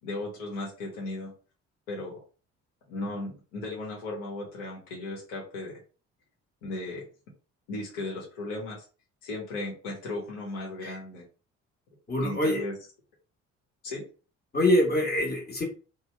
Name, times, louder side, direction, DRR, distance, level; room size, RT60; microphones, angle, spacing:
voice 1, 0.0-1.3 1.9-2.2 2.9-5.8 6.6-7.1 7.7-8.8 9.2-11.2 12.2-12.7 13.8-14.0, left 2 dB, 65° left, -3 dB, 1.0 m, -36 dB
voice 2, 12.1-12.6 14.5-15.6, left 1 dB, 25° left, -2 dB, 1.2 m, -24 dB
2.6 x 2.1 x 3.2 m, 0.35 s
figure-of-eight pair, 45°, 36 cm